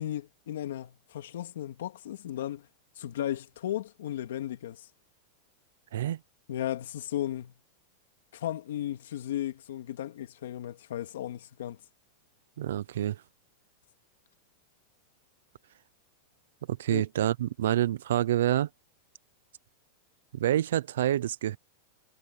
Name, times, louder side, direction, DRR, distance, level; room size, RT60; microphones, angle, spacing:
voice 1, 0.0-2.7 3.0-4.9 6.5-7.5 8.3-11.8 16.9-17.0, left 12 dB, 80° left, 2.5 m, -35 dB
voice 2, 12.6-13.2 16.7-18.7 20.3-21.6, right 12 dB, 80° right, 0.6 m, -27 dB
supercardioid pair, 175°, 0 cm